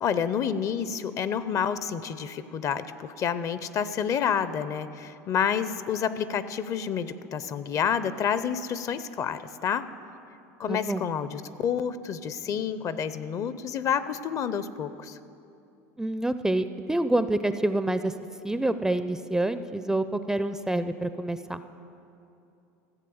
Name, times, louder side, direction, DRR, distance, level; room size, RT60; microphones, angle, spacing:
voice 1, 0.0-9.8 10.6-15.2, left 7 dB, 40° left, 14 dB, 0.5 m, -29 dB
voice 2, 10.7-11.0 16.0-18.1 18.4-21.6, right 1 dB, 5° right, 11 dB, 0.4 m, -27 dB
14.5 x 7.4 x 7.0 m, 2.7 s
hypercardioid pair, 100°, 8 cm